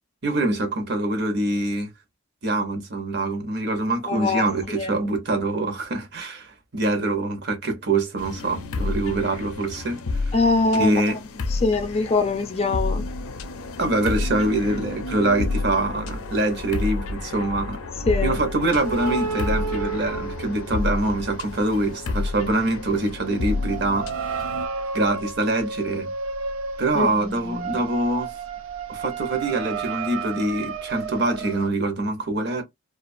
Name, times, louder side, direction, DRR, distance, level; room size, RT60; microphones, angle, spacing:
voice 1, 0.2-1.9 2.4-10.3 10.7-11.2 13.8-17.8 18.2-24.1 24.9-26.1 26.8-28.3 28.9-32.6, right 2 dB, 50° right, 0.7 m, -24 dB
voice 2, 4.1-4.5 4.7-4.9 10.3-11.2 11.5-13.0 18.1-18.4 26.9-27.8, left 3 dB, 30° left, 0.4 m, -23 dB
sound 1, 8.2-24.7, left 3 dB, 85° left, 0.5 m, -30 dB
sound 2, 18.7-21.2 21.5-31.7, right 5 dB, 75° right, 0.4 m, -32 dB
2.4 x 2.3 x 2.5 m
head